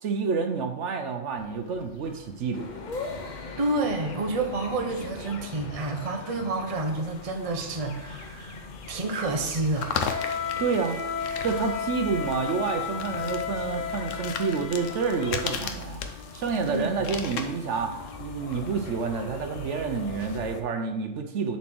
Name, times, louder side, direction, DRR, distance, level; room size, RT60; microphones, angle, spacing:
voice 1, 0.0-2.7 10.6-11.0 11.4-16.0 16.3-17.9 18.2-21.6, right 5 dB, 70° right, 6 dB, 1.0 m, -29 dB
sound 1, 1.4-20.4, left 6 dB, 75° left, 1.1 m, -40 dB
sound 2, 2.5-20.6, left 5 dB, 40° left, 0.8 m, -37 dB
voice 2, 3.6-9.9 16.6-16.9, right 2 dB, 35° right, 4 dB, 0.8 m, -29 dB
7.2 x 4.2 x 6.1 m, 0.93 s
omnidirectional pair, 1.3 m